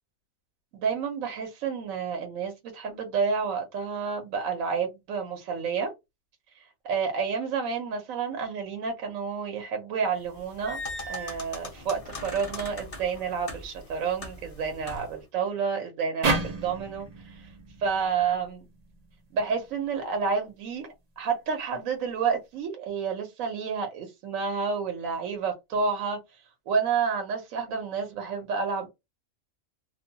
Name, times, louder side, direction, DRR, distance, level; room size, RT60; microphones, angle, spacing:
voice 1, 0.7-5.9 6.8-10.8 11.1-17.4 17.8-18.6 19.3-20.9 21.2-26.2 26.7-28.9, right 5 dB, 75° right, 1.1 m, -30 dB
sound 1, 10.2-15.2, left 2 dB, 35° left, 0.6 m, -40 dB
sound 2, 16.2-19.5, right 3 dB, 50° right, 0.5 m, -32 dB
2.6 x 2.2 x 2.7 m
omnidirectional pair, 1.4 m